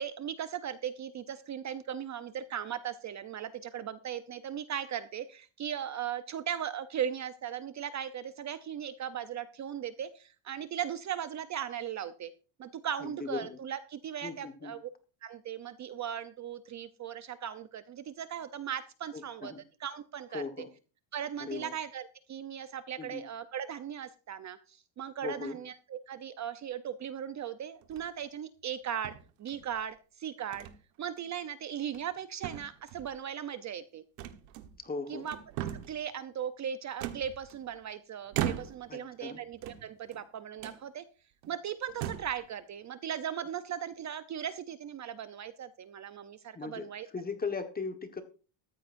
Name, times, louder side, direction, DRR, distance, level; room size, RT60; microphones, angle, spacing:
voice 1, 0.0-12.3 12.6-14.9 15.2-19.5 19.8-20.4 21.1-29.1 29.4-30.7 31.0-34.0 35.1-35.4 35.9-41.0 41.5-47.1, right 9 dB, 35° right, 12 dB, 0.8 m, -38 dB
voice 2, 13.0-13.6 14.2-14.7 19.1-19.6 20.3-20.7 21.4-21.7 23.0-23.2 25.2-25.6 34.8-35.3 38.9-39.4 46.5-46.8 47.1-48.2, left 4 dB, 20° left, 7 dB, 1.5 m, -38 dB
sound 1, 27.8-28.2 29.0-29.8 30.5-30.8 31.2-31.3 31.8-32.2 32.4-33.1 34.2-34.9 35.2-36.0 37.0-37.8 38.3-39.0 39.5-40.2 40.6-40.8 41.4-41.5 41.9-42.4, right 11 dB, 80° right, 1.5 m, -38 dB
14.0 x 13.0 x 2.6 m, 0.36 s
cardioid pair, 120°, 48 cm